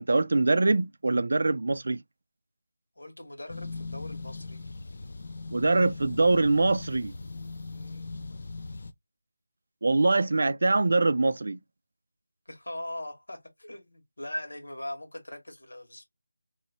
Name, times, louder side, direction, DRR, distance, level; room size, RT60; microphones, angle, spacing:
voice 1, 0.0-2.0 5.5-7.1 9.8-11.6, right 3 dB, 50° right, 0.3 m, -23 dB
voice 2, 2.9-4.7 7.7-8.2 12.4-16.0, left 1 dB, 85° left, 1.7 m, -40 dB
sound 1, 3.5-8.9, left 3 dB, 40° left, 0.4 m, -39 dB
3.0 x 3.0 x 3.0 m
figure-of-eight pair, 175°, 0 cm